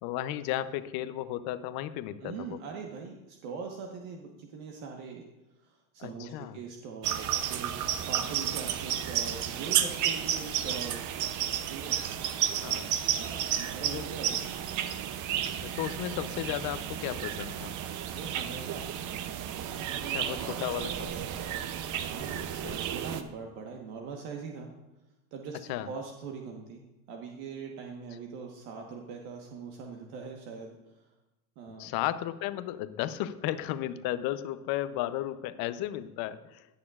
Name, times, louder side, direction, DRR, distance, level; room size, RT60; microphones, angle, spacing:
voice 1, 0.0-2.6 6.0-6.6 10.7-10.8 12.4-12.9 13.9-14.1 15.4-17.7 20.1-21.1 22.6-22.8 25.7-25.9 31.8-36.7, left 13 dB, 55° left, 13 dB, 0.7 m, -34 dB
voice 2, 2.2-5.2 5.6-7.7 8.1-11.1 11.7-12.0 13.1-14.6 18.1-18.9 19.9-20.5 20.8-21.4 22.0-22.4 22.8-24.7 25.3-25.6 25.8-30.8 31.6-31.9, right 5 dB, 65° right, 1 dB, 1.4 m, -42 dB
sound 1, 7.0-23.2, right 10 dB, 45° right, 0.7 m, -32 dB
19.5 x 6.8 x 2.4 m, 1.0 s
supercardioid pair, 115°, 44 cm